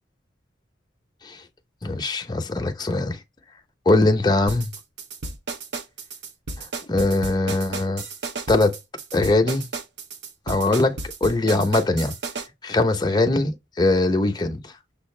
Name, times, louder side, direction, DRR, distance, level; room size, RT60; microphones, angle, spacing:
voice 1, 1.8-3.2 3.9-4.7 6.9-8.0 8.5-8.8 9.1-9.7 10.5-12.1 12.6-14.6, left 2 dB, 20° left, 0.6 m, -21 dB
sound 1, 4.5-12.5, right 3 dB, 65° right, 0.8 m, -33 dB
6.4 x 2.4 x 3.2 m
head